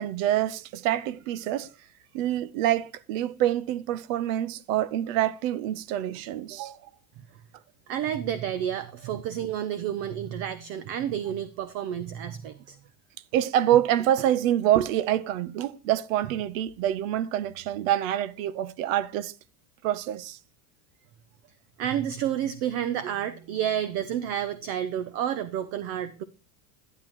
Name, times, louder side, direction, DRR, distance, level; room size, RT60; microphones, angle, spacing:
voice 1, 0.0-1.7 2.1-6.8 13.3-19.3 19.8-20.4, right 12 dB, 70° right, 0.8 m, -26 dB
voice 2, 7.9-12.8 21.8-26.2, right 10 dB, 35° right, 0.4 m, -30 dB
10.5 x 10.5 x 3.0 m
cardioid pair, 170°, 42 cm